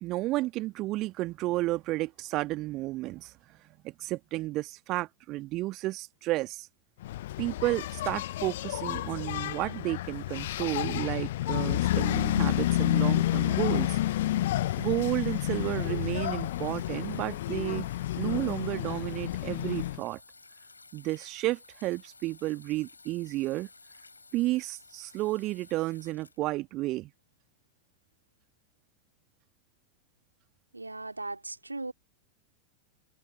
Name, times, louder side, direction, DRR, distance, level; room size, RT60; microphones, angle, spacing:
voice 1, 0.0-3.3 3.8-6.7 7.4-14.0 14.8-17.9 18.2-20.2 20.9-23.7 24.3-27.1, right 18 dB, 40° right, 1.6 m, -32 dB
Engine, 7.0-20.0, left 14 dB, 55° left, 0.7 m, -30 dB
sound 1, 11.8-27.2 28.1-28.2, left 3 dB, 80° left, 5.9 m, -54 dB
voice 2, 30.7-31.9, right 2 dB, 80° right, 3.7 m, -38 dB
figure-of-eight pair, 90°, 0 cm